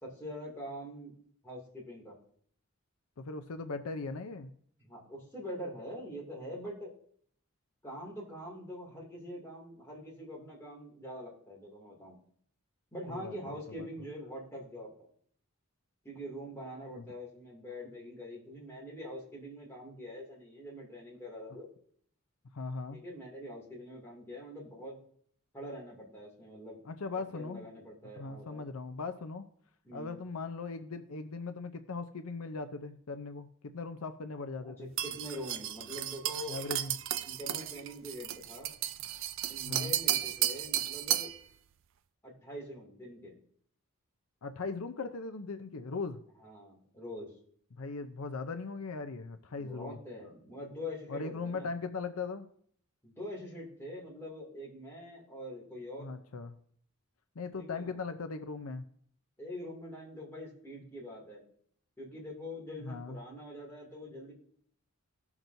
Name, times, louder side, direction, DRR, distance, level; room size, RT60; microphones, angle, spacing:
voice 1, 0.0-1.1 1.4-2.2 4.8-6.9 7.8-12.2 12.9-15.1 16.0-21.7 22.9-25.0 25.5-26.8 27.3-28.7 29.8-30.2 34.6-36.6 37.2-38.7 39.5-41.3 42.2-43.4 46.4-47.4 49.6-51.7 53.0-56.1 57.6-58.0 59.4-61.4 62.0-64.3, equal, 10° left, -5 dB, 2.5 m, -44 dB
voice 2, 3.2-4.5 13.1-13.9 17.0-17.1 22.5-23.0 26.9-27.7 28.2-29.4 29.9-33.5 33.7-34.9 36.5-36.9 39.7-39.9 44.4-46.2 47.8-50.0 51.1-52.5 56.0-56.6 57.4-58.8 62.8-63.2, left 4 dB, 75° left, 9 dB, 0.6 m, -39 dB
sound 1, 35.0-41.4, right 12 dB, 60° right, 0.4 m, -34 dB
17.0 x 5.9 x 2.7 m, 0.62 s
head